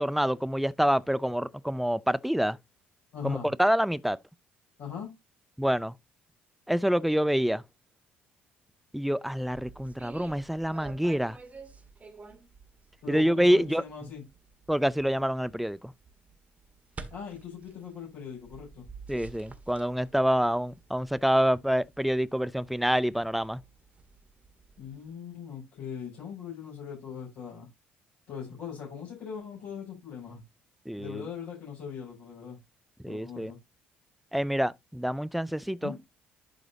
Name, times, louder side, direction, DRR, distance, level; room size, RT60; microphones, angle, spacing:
voice 1, 0.0-2.6 3.2-4.2 5.6-5.9 6.7-7.6 8.9-11.4 13.1-13.8 14.7-15.9 19.1-23.6 30.9-31.2 33.0-33.5 34.3-35.9, equal, ahead, 0.5 m, -27 dB
voice 2, 3.1-3.5 4.8-5.1 13.0-14.2 17.1-18.9 24.8-27.7 28.3-30.4 31.0-32.6 33.0-33.6 35.8-36.0, left 7 dB, 65° left, 6.3 m, -40 dB
sound 1, 9.3-25.1, right 4 dB, 30° right, 1.8 m, -51 dB
11.5 x 5.0 x 2.8 m
figure-of-eight pair, 50°, 5 cm